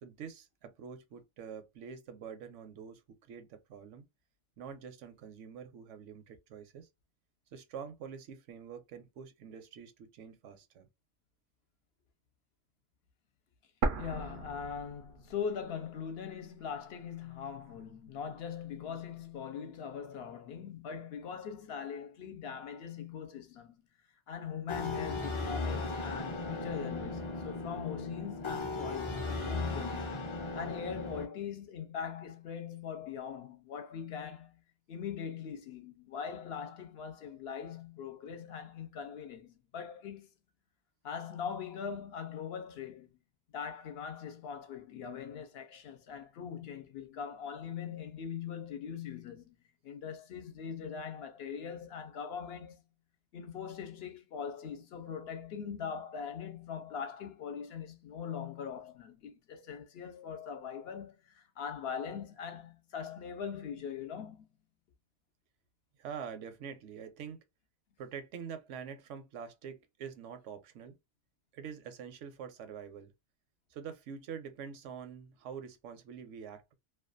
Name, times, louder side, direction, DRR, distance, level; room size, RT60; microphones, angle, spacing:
voice 1, 0.0-4.0 4.6-6.9 7.5-10.9 66.0-67.4 68.0-71.0 71.5-73.1 73.7-76.7, right 7 dB, 90° right, 1.0 m, -46 dB
sound 1, 13.8-15.8 16.1-16.2 16.9-17.8, right 3 dB, 60° right, 0.6 m, -36 dB
voice 2, 14.0-23.7 24.3-30.1 30.5-34.6 34.9-40.3 41.0-43.1 43.5-49.5 49.8-52.8 53.3-64.5, left 7 dB, 65° left, 0.8 m, -41 dB
sound 2, 24.7-31.3, left 3 dB, 45° left, 0.4 m, -37 dB
2.5 x 2.2 x 2.4 m
omnidirectional pair, 1.2 m